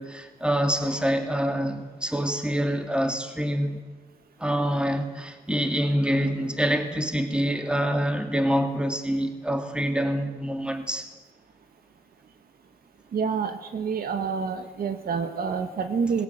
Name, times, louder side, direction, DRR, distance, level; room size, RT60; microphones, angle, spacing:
voice 1, 0.0-3.8 4.4-11.1, equal, 5° right, 2.6 m, -26 dB
voice 2, 13.1-16.2, right 5 dB, 70° right, 1.6 m, -28 dB
19.0 x 17.0 x 9.0 m
cardioid pair, 80°, 16 cm